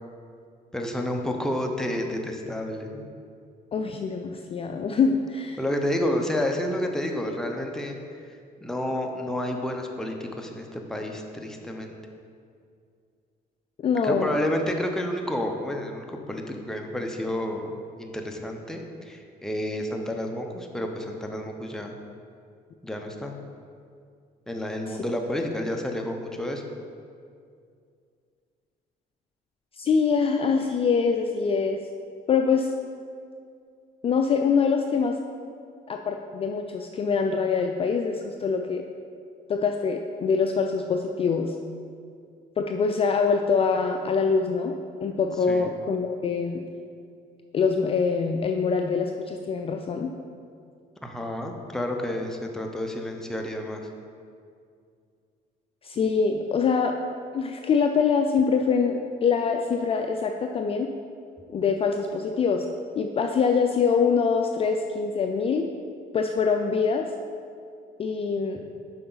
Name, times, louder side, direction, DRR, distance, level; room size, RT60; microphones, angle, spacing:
voice 1, 0.7-3.1 5.6-8.0 8.6-11.9 14.0-21.9 22.8-23.3 24.5-26.6 45.5-45.7 51.0-53.8, left 1 dB, 5° left, 2 dB, 0.7 m, -30 dB
voice 2, 3.7-5.6 13.8-14.4 24.9-25.0 29.8-31.8 32.3-32.7 34.0-35.1 35.9-38.8 39.5-41.6 42.6-44.7 45.0-46.6 47.5-50.1 55.8-56.9 57.3-60.9 61.5-62.6 63.0-65.7 66.1-67.1 68.0-68.6, left 5 dB, 35° left, 3 dB, 0.4 m, -24 dB
7.7 x 5.5 x 4.0 m, 2.3 s
cardioid pair, 110°, 17 cm